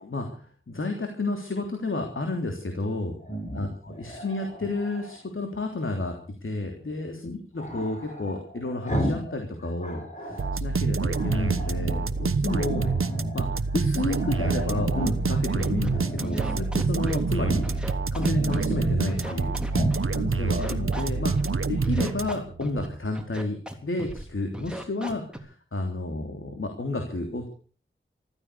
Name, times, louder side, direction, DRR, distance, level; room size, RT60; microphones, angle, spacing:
voice 1, 0.0-3.2 3.5-12.9 13.3-13.5 13.7-17.6 18.1-19.5 20.1-21.3 21.7-27.5, left 2 dB, 70° left, 4 dB, 3.3 m, -31 dB
Growling, 3.2-5.2 7.6-9.3 9.6-10.5 11.1-12.0 12.5-13.5 13.8-13.9 14.1-15.4 15.9-16.7 17.4-17.8 18.2-19.4 19.7-20.0, equal, 35° left, 6.8 m, -33 dB
sound 1, 10.4-22.6, right 4 dB, 80° right, 1.0 m, -27 dB
Scratching (performance technique), 15.6-15.9 16.2-17.3 17.6-18.7 19.1-20.2 20.5-21.5 21.8-22.9 23.1-23.7 24.0-24.2 24.5-25.4, right 1 dB, 5° right, 3.5 m, -37 dB
14.5 x 14.0 x 6.9 m, 0.41 s
wide cardioid pair, 55°, 21 cm